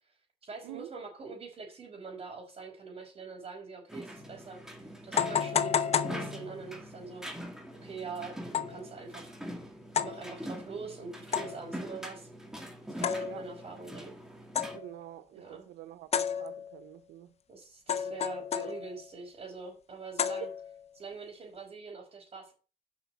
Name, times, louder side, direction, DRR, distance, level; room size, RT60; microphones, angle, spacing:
voice 1, 0.4-7.3 7.8-9.4 10.0-12.3 13.0-14.2 15.3-15.7 17.5-20.5 21.0-22.5, right 4 dB, 35° right, 4.2 m, -44 dB
sound 1, 3.9-14.8, equal, 5° right, 2.2 m, -43 dB
sound 2, 4.2-4.3 5.2-6.8 8.5-8.9 9.9-10.3 11.3-11.7 13.0-13.6 14.5-15.0 16.1-16.9 17.9-19.1 20.2-20.9, left 7 dB, 40° left, 0.9 m, -32 dB
voice 2, 14.7-17.3 18.0-18.1 20.4-20.5, right 16 dB, 85° right, 0.6 m, -46 dB
7.3 x 5.8 x 7.1 m
cardioid pair, 110°, 17 cm